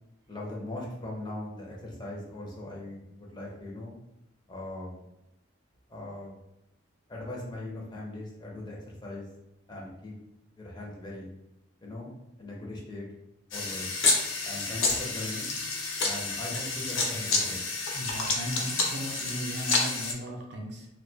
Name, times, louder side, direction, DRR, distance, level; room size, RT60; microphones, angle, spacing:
voice 1, 0.3-3.9 4.5-5.0 5.9-6.4 7.1-9.3 9.7-10.1 10.6-11.3 11.8-12.1 12.4-13.0 13.5-13.9 14.4-15.5 16.0-17.6, left 1 dB, 20° left, -3 dB, 0.4 m, -39 dB
sound 1, 13.5-20.1, left 3 dB, 90° left, 0.5 m, -29 dB
voice 2, 17.9-20.9, equal, 55° right, 0 dB, 0.4 m, -37 dB
2.2 x 2.1 x 2.6 m, 0.87 s
head